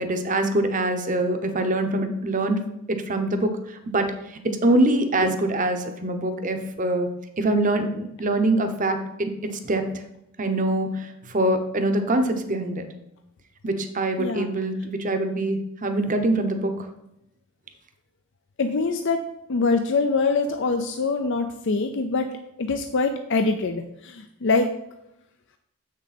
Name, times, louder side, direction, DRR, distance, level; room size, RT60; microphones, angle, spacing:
voice 1, 0.0-2.6 2.9-7.1 7.4-9.9 10.4-12.8 13.6-16.8, right 1 dB, 35° right, 7 dB, 0.8 m, -24 dB
voice 2, 18.6-19.2 19.5-24.7, left 3 dB, 55° left, 6 dB, 0.5 m, -24 dB
7.5 x 6.3 x 4.2 m, 0.84 s
head